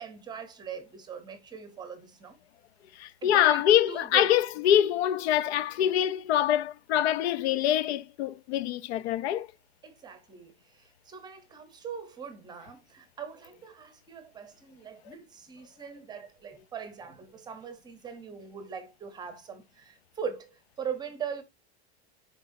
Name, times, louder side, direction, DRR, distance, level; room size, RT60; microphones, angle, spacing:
voice 1, 0.0-2.4 3.2-4.4 9.8-21.4, right 7 dB, 10° right, 0.7 m, -41 dB
voice 2, 3.0-9.5, left 11 dB, 70° left, 0.7 m, -25 dB
9.5 x 4.4 x 2.6 m
supercardioid pair, 180°, 34 cm